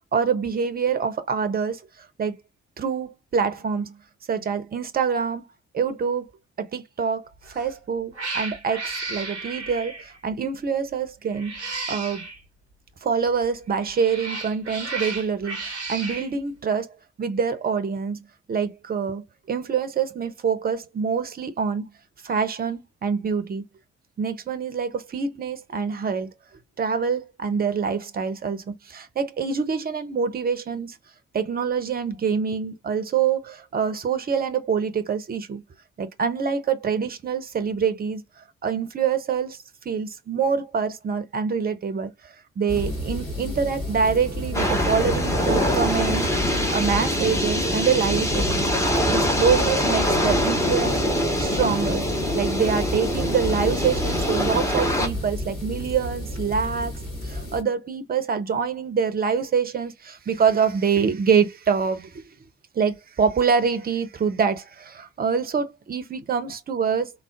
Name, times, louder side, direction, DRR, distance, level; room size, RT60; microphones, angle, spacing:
voice 1, 0.1-2.4 2.8-4.0 4.3-5.5 5.7-6.3 6.6-7.3 7.5-11.6 11.9-12.3 13.0-18.2 18.5-21.9 22.2-23.6 24.2-26.3 26.8-31.0 31.3-35.6 36.0-46.3 46.7-48.7 49.1-51.0 51.4-52.0 52.3-56.9 57.2-62.2 62.7-67.1, right 6 dB, 30° right, 0.6 m, -25 dB
Cat, 7.4-7.7 8.1-10.2 11.3-12.4 13.7-16.3, right 3 dB, 90° right, 0.6 m, -33 dB
sound 1, 42.7-57.6, left 1 dB, 40° left, 2.0 m, -31 dB
sound 2, 44.5-55.1, equal, 10° left, 0.9 m, -24 dB
3.5 x 2.1 x 2.4 m
figure-of-eight pair, 40°, 33 cm